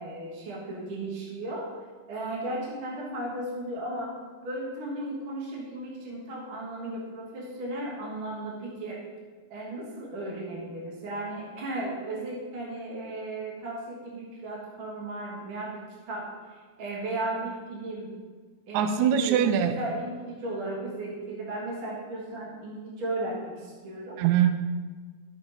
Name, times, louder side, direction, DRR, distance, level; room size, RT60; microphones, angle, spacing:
voice 1, 0.0-1.8 2.1-4.1 4.4-9.0 9.5-18.1 18.7-19.5 19.8-24.2, right 1 dB, 50° right, -3 dB, 1.9 m, -35 dB
voice 2, 18.7-19.8 24.2-24.5, right 9 dB, 85° right, 8 dB, 1.7 m, -22 dB
11.5 x 7.3 x 3.9 m, 1.4 s
omnidirectional pair, 3.9 m